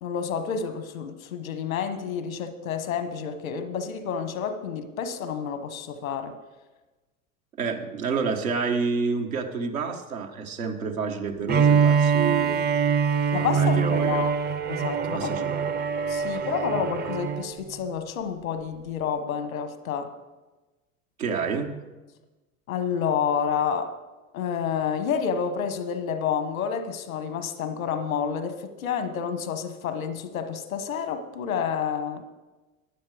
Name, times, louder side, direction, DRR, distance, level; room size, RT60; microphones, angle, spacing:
voice 1, 0.0-6.3 13.3-14.4 14.7-15.3 16.1-20.1 22.7-24.0 24.3-32.2, left 7 dB, 85° left, 10 dB, 1.2 m, -29 dB
voice 2, 7.6-12.7 13.4-14.2 15.1-15.7 21.2-21.7, right 4 dB, 90° right, 2 dB, 1.5 m, -29 dB
Bowed string instrument, 11.5-17.5, right 6 dB, 25° right, 0.5 m, -23 dB
14.5 x 10.0 x 4.9 m, 1.2 s
hypercardioid pair, 80°, 40 cm